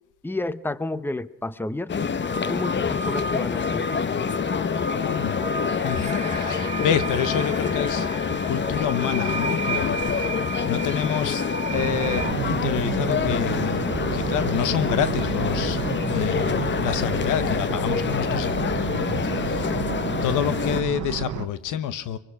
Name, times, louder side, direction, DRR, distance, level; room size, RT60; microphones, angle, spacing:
voice 1, 0.2-1.9 2.5-3.9, left 2 dB, 5° left, 0.9 m, -30 dB
sound 1, 1.9-20.8, left 6 dB, 40° left, 0.9 m, -27 dB
sound 2, 2.0-12.3, right 2 dB, 25° right, 2.0 m, -33 dB
voice 2, 5.0-5.4 5.8-13.8 14.1-19.8 20.2-22.2, left 9 dB, 90° left, 1.3 m, -28 dB
sound 3, 11.7-21.5, right 12 dB, 70° right, 1.0 m, -31 dB
24.5 x 23.5 x 6.1 m
cardioid pair, 90°, 30 cm